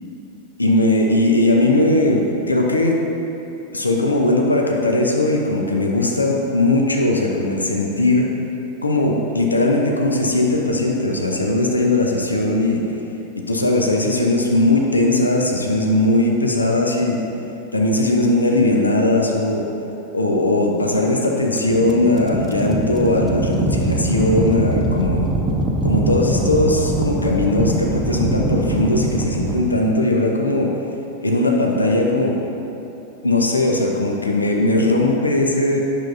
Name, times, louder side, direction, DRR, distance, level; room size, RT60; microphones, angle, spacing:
voice 1, 0.6-3.0 3.7-8.2 8.8-12.8 13.5-17.2 17.7-19.6 20.1-25.3 25.8-30.7 31.2-32.3 33.2-35.8, left 2 dB, 80° left, 0 dB, 0.6 m, -18 dB
sound 1, 21.6-29.6, right 1 dB, 15° right, 0.7 m, -22 dB
9.0 x 6.6 x 2.6 m, 2.9 s
figure-of-eight pair, 90°, 0 cm